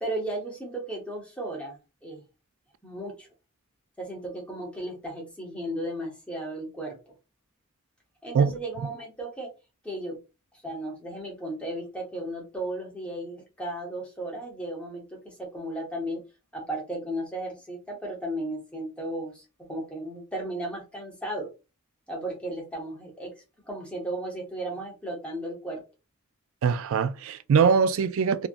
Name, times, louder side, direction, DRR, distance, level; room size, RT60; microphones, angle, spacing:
voice 1, 0.0-1.8 2.0-2.2 2.8-3.3 4.0-7.0 8.2-9.5 9.8-10.2 10.6-16.2 16.5-21.5 22.1-23.3 23.7-25.8, right 1 dB, 5° left, 0.8 m, -35 dB
voice 2, 26.6-28.5, right 6 dB, 70° right, 0.3 m, -22 dB
3.1 x 2.5 x 2.5 m
head